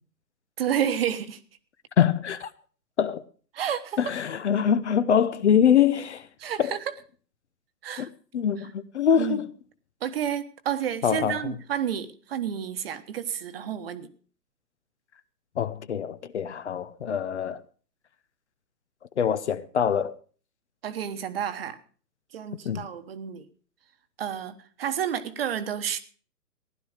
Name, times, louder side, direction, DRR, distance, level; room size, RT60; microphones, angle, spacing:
voice 1, 0.6-1.4 3.5-4.0 6.4-6.8 7.8-8.1 9.2-9.4 10.0-14.1 20.8-21.8 22.3-23.5 24.2-26.0, right 9 dB, 35° right, 1.2 m, -30 dB
voice 2, 2.0-2.5 3.0-3.2 4.0-6.3 6.6-6.7 8.0-8.1 8.3-9.5 11.0-11.5 15.6-17.6 19.2-20.1 22.6-22.9, left 8 dB, 45° left, 0.8 m, -24 dB
15.5 x 11.5 x 5.0 m
hypercardioid pair, 150°, 49 cm